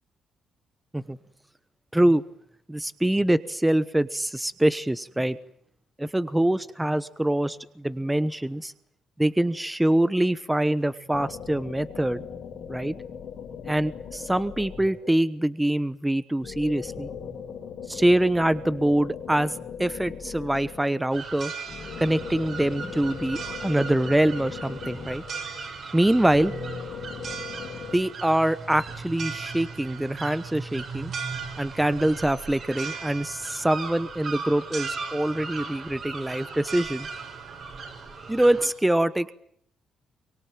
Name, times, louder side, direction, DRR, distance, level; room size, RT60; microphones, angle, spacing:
voice 1, 1.9-2.2 2.7-5.4 6.0-8.7 9.2-12.2 12.7-13.0 13.6-17.1 17.9-21.5 22.0-25.2 25.9-26.6 27.9-31.1 31.6-37.1 38.3-39.3, right 1 dB, 10° right, 14 dB, 1.1 m, -24 dB
sound 1, 11.1-15.3 16.4-21.0 21.7-25.7 26.3-28.0, left 7 dB, 70° left, 5.1 m, -39 dB
sound 2, 21.1-38.7, right 5 dB, 55° right, 5.4 m, -37 dB
24.5 x 23.5 x 9.1 m, 0.66 s
cardioid pair, 90°, 0 cm